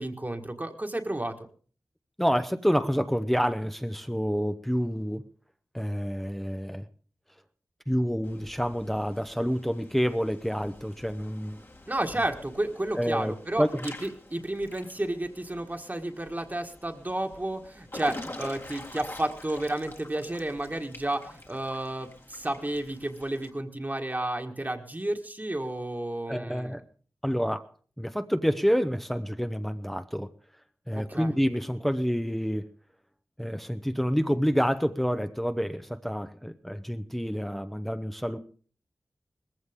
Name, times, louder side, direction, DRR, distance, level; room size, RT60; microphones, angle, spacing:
voice 1, 0.0-1.3 11.9-26.8 30.9-31.3, right 1 dB, 30° right, 3 dB, 1.7 m, -32 dB
voice 2, 2.2-5.2 5.7-6.9 7.9-11.7 12.9-13.9 26.3-26.8 27.2-27.7 28.0-30.3 30.9-32.7 33.4-38.4, equal, 5° left, 8 dB, 0.8 m, -28 dB
Water / Splash splatter / Drip, 8.2-23.5, left 1 dB, 40° left, 2.0 m, -46 dB
19.5 x 15.0 x 3.7 m, 0.42 s
wide cardioid pair, 50°, 6 cm